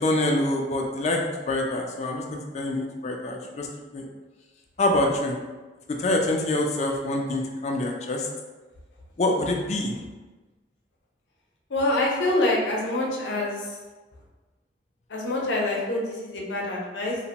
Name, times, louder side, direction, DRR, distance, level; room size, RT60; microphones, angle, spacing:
voice 1, 0.0-3.7 3.9-4.1 4.8-5.4 6.0-8.3 9.2-9.9, left 1 dB, 40° left, 2 dB, 0.3 m, -25 dB
voice 2, 11.7-13.6 15.1-17.2, left 2 dB, 75° left, -2 dB, 0.6 m, -26 dB
2.8 x 2.1 x 2.8 m, 1.3 s
head